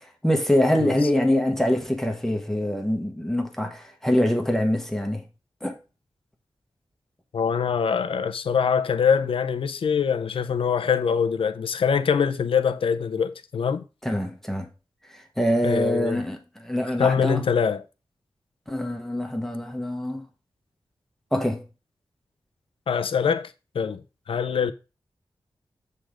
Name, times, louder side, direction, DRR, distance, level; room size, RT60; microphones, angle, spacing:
voice 1, 0.2-5.2 5.6-5.8 14.0-14.7 15.1-17.4 18.7-20.2 21.3-21.6, left 1 dB, 5° left, 1.0 m, -24 dB
voice 2, 7.3-13.8 15.6-16.2 17.0-17.8 22.9-24.0 24.3-24.7, left 6 dB, 80° left, 0.6 m, -23 dB
7.7 x 3.5 x 5.0 m
wide cardioid pair, 125°, 9 cm